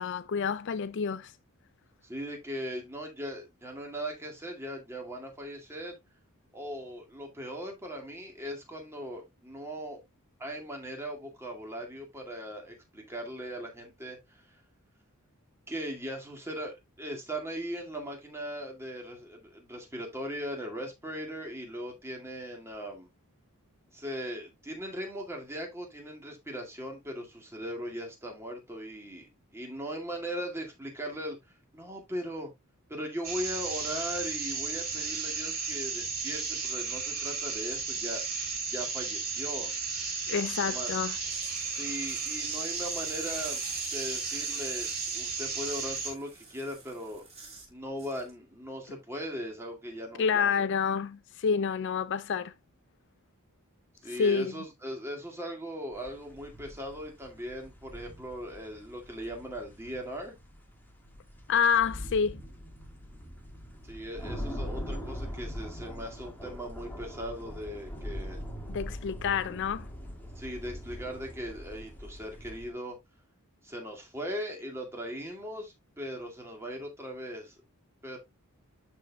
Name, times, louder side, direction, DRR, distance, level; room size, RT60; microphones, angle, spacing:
voice 1, 0.0-1.3 40.3-41.2 50.2-52.5 54.1-54.5 61.5-62.4 68.7-69.9, left 6 dB, 55° left, 0.4 m, -28 dB
voice 2, 2.0-6.0 6.5-10.0 10.4-14.6 15.7-23.1 23.9-31.4 31.7-32.5 32.9-38.2 38.7-39.7 40.6-40.9 41.7-43.6 43.9-47.2 47.7-50.5 54.0-60.3 63.8-68.4 69.2-69.4 70.4-73.0 73.6-77.5 78.0-78.2, equal, 10° right, 2.0 m, -39 dB
sound 1, 33.2-46.1, right 4 dB, 45° right, 3.7 m, -34 dB
sound 2, 41.0-47.7 48.0-48.3, right 3 dB, 30° right, 5.0 m, -48 dB
sound 3, 55.9-72.7, equal, 10° left, 1.6 m, -42 dB
12.0 x 4.4 x 2.2 m
head